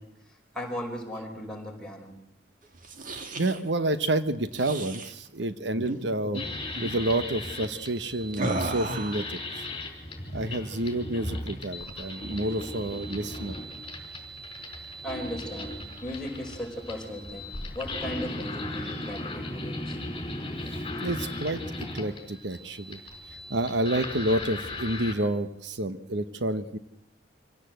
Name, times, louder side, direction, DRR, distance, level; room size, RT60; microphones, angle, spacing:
voice 1, 0.0-2.2 15.0-20.0 20.9-21.0, equal, 5° left, -2 dB, 5.3 m, -37 dB
sound 1, 2.7-3.6 4.5-5.1 5.7-6.0 6.2-6.5 6.8-7.0 8.3-9.3, right 2 dB, 50° right, 2.1 m, -33 dB
voice 2, 3.4-6.4 6.8-9.7 10.3-13.6 20.7-21.6 21.9-23.0 23.3-26.8, right 1 dB, 75° right, 11 dB, 1.1 m, -29 dB
sound 2, 6.3-25.1, left 1 dB, 30° left, 5.0 m, -37 dB
25.5 x 17.0 x 7.9 m, 0.81 s
head